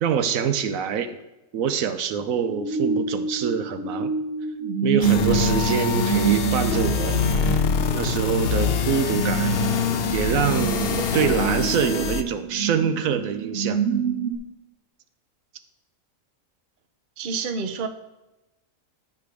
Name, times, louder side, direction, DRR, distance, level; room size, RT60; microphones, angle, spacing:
voice 1, 0.0-1.2 1.5-4.1 4.8-7.2 7.9-9.5 10.1-13.8, right 7 dB, 85° right, 10 dB, 1.1 m, -25 dB
sound 1, 2.1-14.3, right 6 dB, 60° right, 1.8 m, -27 dB
sound 2, 5.0-12.2, left 7 dB, 55° left, 0.8 m, -25 dB
voice 2, 17.2-17.9, right 5 dB, 45° right, 8 dB, 0.8 m, -28 dB
14.0 x 6.0 x 3.4 m, 1.0 s
omnidirectional pair, 1.4 m